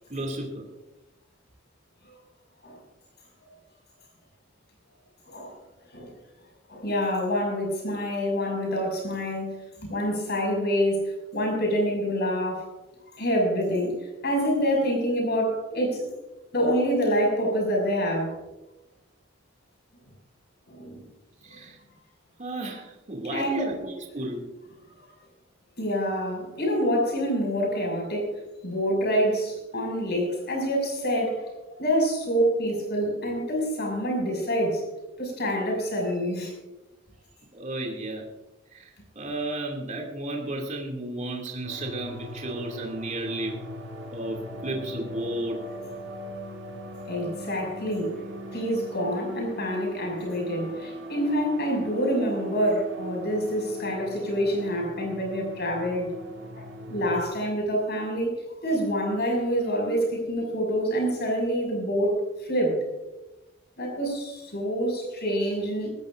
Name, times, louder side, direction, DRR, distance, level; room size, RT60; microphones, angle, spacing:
voice 1, 0.1-0.7 21.4-21.8 22.4-24.5 37.5-38.2 38.7-43.6 44.1-45.7 49.0-49.1, right 1 dB, 40° right, 0 dB, 2.6 m, -33 dB
voice 2, 5.3-5.6 5.9-6.1 6.7-9.5 9.8-12.7 13.1-16.1 16.5-18.4 20.7-21.0 23.2-23.7 25.8-28.3 28.6-31.4 31.8-34.8 35.2-36.5 47.1-48.2 48.5-56.1 56.6-58.4 58.6-62.8 63.8-65.9, equal, 55° left, 1 dB, 6.3 m, -26 dB
sound 1, 41.6-57.3, right 1 dB, 65° right, 2.3 m, -39 dB
20.0 x 15.0 x 2.6 m, 1.0 s
head